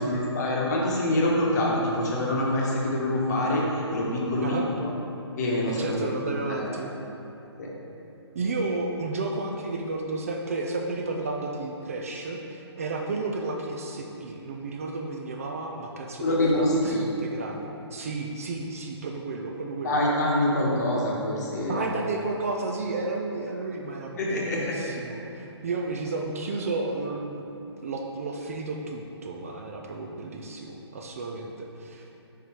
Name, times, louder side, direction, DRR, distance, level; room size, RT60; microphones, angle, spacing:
voice 1, 0.0-3.6 3.9-4.9 5.4-6.0 6.3-6.7 7.6-7.7 16.2-17.1 19.8-21.8 24.2-24.8, left 1 dB, 40° left, -3 dB, 1.1 m, -25 dB
voice 2, 5.8-6.9 8.3-20.0 21.7-27.5 27.8-32.0, right 3 dB, 30° right, 1 dB, 0.4 m, -32 dB
5.3 x 4.6 x 4.4 m, 2.9 s
figure-of-eight pair, 135°, 15 cm